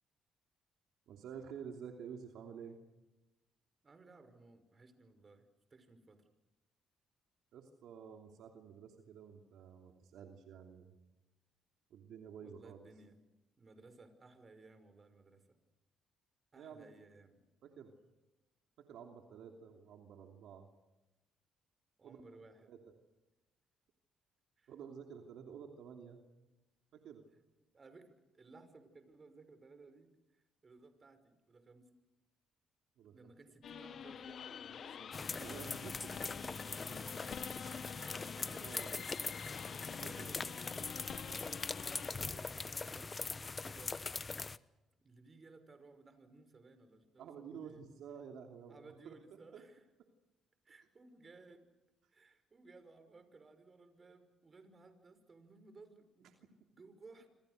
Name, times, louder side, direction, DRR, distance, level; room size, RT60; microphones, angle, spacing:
voice 1, 1.1-2.8 7.5-10.9 11.9-12.8 16.5-16.9 17.6-17.9 18.8-20.7 22.0-22.2 22.7-22.8 24.7-26.2 26.9-27.2 33.0-33.3 35.4-36.8 37.9-38.1 38.6-38.9 40.0-40.3 47.2-49.2 49.5-49.6, right 7 dB, 75° right, 4 dB, 2.9 m, -51 dB
voice 2, 3.8-5.5 5.7-6.2 12.4-13.1 13.6-15.6 16.5-17.4 22.0-22.8 24.6-24.7 27.7-31.9 33.1-35.6 37.9-39.7 40.1-43.9 45.0-47.8 48.7-49.8 50.6-51.7 52.1-56.5 56.8-57.3, right 3 dB, 35° right, 10 dB, 5.5 m, -59 dB
sound 1, 33.6-42.1, left 8 dB, 60° left, 1.1 m, -48 dB
sound 2, 35.1-44.6, left 4 dB, 30° left, 1.0 m, -42 dB
27.5 x 26.5 x 6.6 m, 1.0 s
supercardioid pair, 65°, 0 cm